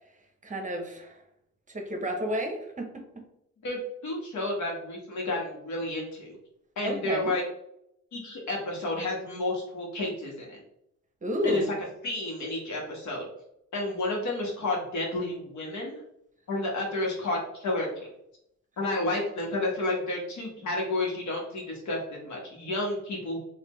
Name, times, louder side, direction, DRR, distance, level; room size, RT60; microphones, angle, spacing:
voice 1, 0.4-1.2 1.7-3.2 6.8-7.3 11.2-11.7, equal, 25° right, 3 dB, 0.8 m, -31 dB
voice 2, 3.6-6.4 6.8-7.4 8.1-10.6 11.4-11.6 12.0-13.2 13.7-16.0 16.5-18.1 18.8-23.4, left 2 dB, 70° left, -2 dB, 1.4 m, -31 dB
4.2 x 2.7 x 3.1 m, 0.78 s
cardioid pair, 90°, 30 cm